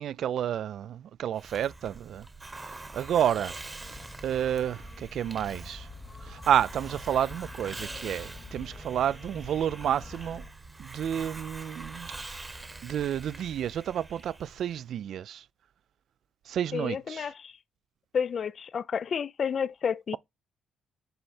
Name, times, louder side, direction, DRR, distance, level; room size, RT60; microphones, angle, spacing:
voice 1, 0.0-2.3 2.9-3.6 3.9-5.9 6.2-10.4 10.8-12.1 12.8-15.4 16.5-17.3, right 10 dB, 70° right, 0.3 m, -30 dB
Hiss, 1.3-14.8, right 3 dB, 20° right, 0.9 m, -44 dB
sound 1, 3.8-10.5, left 3 dB, 25° left, 1.1 m, -46 dB
voice 2, 16.7-17.5 18.1-20.2, left 7 dB, 50° left, 0.3 m, -30 dB
7.7 x 3.4 x 4.2 m
cardioid pair, 90°, 0 cm